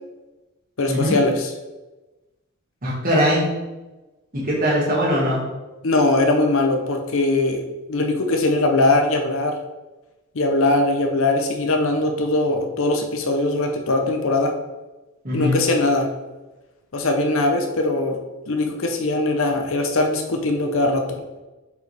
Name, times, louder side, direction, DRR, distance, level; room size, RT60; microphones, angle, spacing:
voice 1, 0.8-1.5 5.8-7.6 7.9-9.6 10.3-14.5 15.3-16.1 16.9-18.2 18.5-21.2, left 2 dB, 70° left, 3 dB, 0.7 m, -21 dB
voice 2, 2.8-3.5 4.3-5.4 15.2-15.6, equal, 40° right, -6 dB, 1.8 m, -20 dB
6.8 x 4.8 x 3.4 m, 1.1 s
head